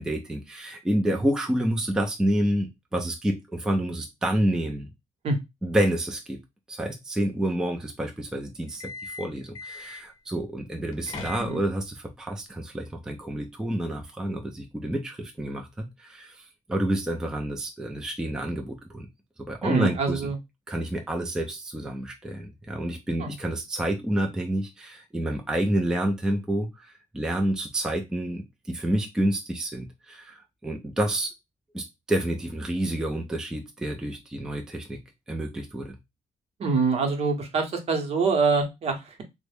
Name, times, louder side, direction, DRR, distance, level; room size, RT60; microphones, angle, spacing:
voice 1, 0.0-4.9 5.6-6.4 6.7-19.1 19.4-20.2 20.7-31.3 31.7-35.0 35.3-36.0, right 1 dB, 5° right, 3 dB, 0.4 m, -29 dB
sound 1, 8.7-10.2 10.8-11.9, left 3 dB, 30° left, 0.9 m, -40 dB
voice 2, 19.6-20.4 23.2-23.3 36.6-39.2, right 4 dB, 50° right, 4 dB, 0.8 m, -25 dB
3.5 x 2.1 x 3.3 m, 0.20 s
cardioid pair, 170°, 13 cm